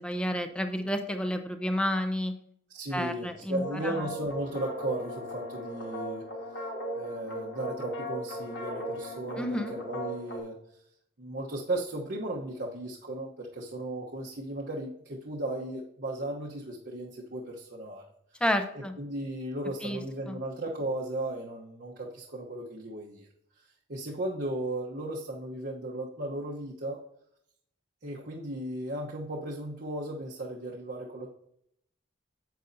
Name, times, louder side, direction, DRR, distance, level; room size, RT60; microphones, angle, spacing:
voice 1, 0.0-2.4 2.9-4.1 9.4-9.7 18.4-18.9 19.8-20.0 20.2-20.4, equal, 5° left, 7 dB, 0.6 m, -30 dB
voice 2, 2.7-6.3 6.9-10.6 11.2-18.0 18.3-18.4 18.7-23.3 23.6-27.0 28.0-31.3, right 1 dB, 50° right, -3 dB, 1.0 m, -36 dB
sound 1, 3.5-10.4, equal, 65° left, 2.6 m, -37 dB
9.2 x 8.1 x 2.6 m, 0.71 s
head